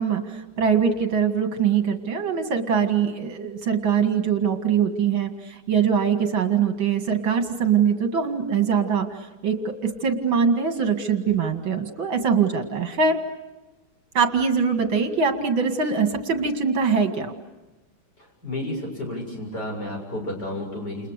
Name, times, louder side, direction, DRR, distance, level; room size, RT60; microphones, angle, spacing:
voice 1, 0.0-13.2 14.1-17.3, right 6 dB, 65° right, 5 dB, 2.8 m, -23 dB
voice 2, 18.4-21.1, left 1 dB, 50° left, 1 dB, 7.8 m, -31 dB
29.5 x 29.5 x 6.7 m, 1.1 s
omnidirectional pair, 2.3 m